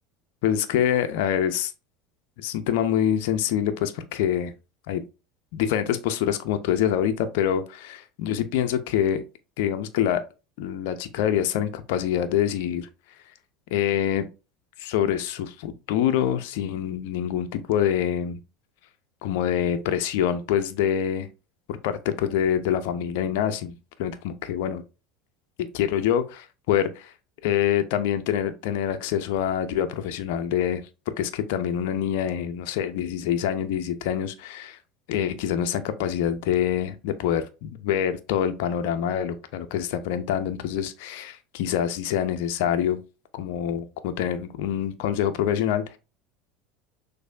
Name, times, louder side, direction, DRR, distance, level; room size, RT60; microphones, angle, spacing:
voice 1, 0.4-1.7 2.4-4.5 4.9-5.0 5.5-9.2 9.6-10.2 10.6-12.9 13.7-14.3 14.8-18.4 19.2-21.3 21.7-24.8 25.7-27.1 27.4-30.8 31.2-34.8 35.1-43.0 43.3-46.0, left 10 dB, 65° left, 0.5 m, -25 dB
6.1 x 2.6 x 2.5 m
hypercardioid pair, 75°, 0 cm